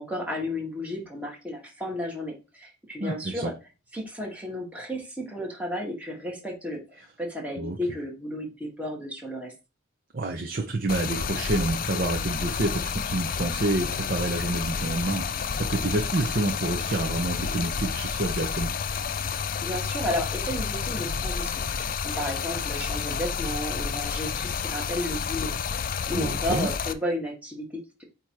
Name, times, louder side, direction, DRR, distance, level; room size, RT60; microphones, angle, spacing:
voice 1, 0.0-3.5 3.9-9.5 19.6-25.5 25.8-28.0, left 1 dB, 5° right, -1 dB, 2.0 m, -33 dB
voice 2, 3.0-3.5 7.6-7.8 10.1-18.7 26.1-26.7, right 2 dB, 50° right, 2 dB, 0.8 m, -28 dB
Stream, 10.9-26.9, left 6 dB, 45° left, 0.5 m, -30 dB
8.7 x 3.0 x 4.7 m, 0.30 s
head